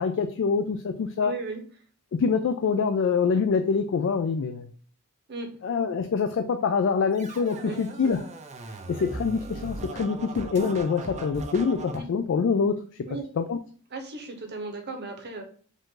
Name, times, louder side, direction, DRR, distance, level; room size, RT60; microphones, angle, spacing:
voice 1, 0.0-1.3 2.2-4.7 5.6-8.2 8.9-12.8 13.4-13.6, left 5 dB, 55° left, 8 dB, 0.3 m, -25 dB
voice 2, 1.2-1.6 5.3-5.5 7.6-7.8 8.0-8.1 8.7-9.1 12.0-12.1 13.1-13.2 13.9-15.4, right 3 dB, 50° right, 4 dB, 0.9 m, -36 dB
Scratching (performance technique), 7.1-12.0, right 2 dB, 30° right, 0.5 m, -39 dB
5.1 x 2.5 x 3.7 m, 0.43 s
head